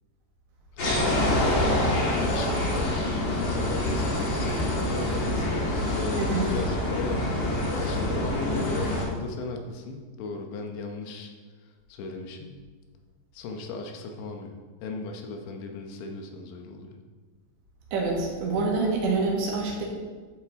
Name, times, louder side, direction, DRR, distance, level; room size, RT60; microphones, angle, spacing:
voice 1, 0.7-11.3 11.9-12.5 13.3-14.6 14.8-17.0, left 3 dB, 80° left, 4 dB, 3.2 m, -36 dB
sound 1, 0.8-9.0, left 1 dB, 50° left, 1.4 m, -26 dB
voice 2, 17.9-19.8, right 3 dB, 75° right, -2 dB, 3.9 m, -26 dB
11.0 x 7.8 x 3.6 m, 1.5 s
omnidirectional pair, 5.2 m